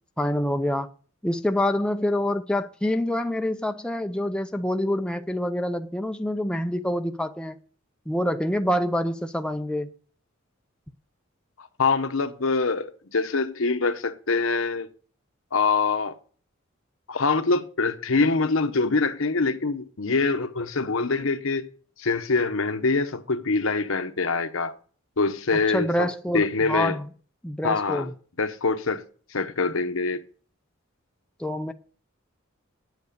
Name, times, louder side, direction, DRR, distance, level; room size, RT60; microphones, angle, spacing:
voice 1, 0.2-0.9 1.2-7.6 8.1-9.9 25.5-27.1 27.4-28.1 31.4-31.7, left 1 dB, 5° left, 0.5 m, -26 dB
voice 2, 11.6-14.9 15.5-16.1 17.1-21.7 22.0-24.7 25.2-27.0 27.6-28.1 28.4-29.0 29.3-30.2, left 4 dB, 75° left, 1.0 m, -24 dB
9.2 x 8.2 x 6.8 m
head